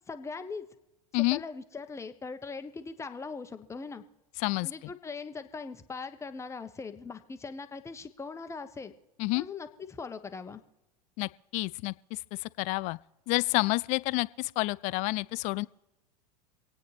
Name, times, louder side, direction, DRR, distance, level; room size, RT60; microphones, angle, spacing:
voice 1, 0.1-0.7 1.1-4.0 4.6-8.9 9.3-10.6, left 4 dB, 15° left, 9 dB, 1.0 m, -40 dB
voice 2, 11.2-11.9 12.6-13.0 13.3-15.7, left 23 dB, 35° left, 20 dB, 0.4 m, -29 dB
26.5 x 9.2 x 3.3 m, 1.0 s
figure-of-eight pair, 85°, 20 cm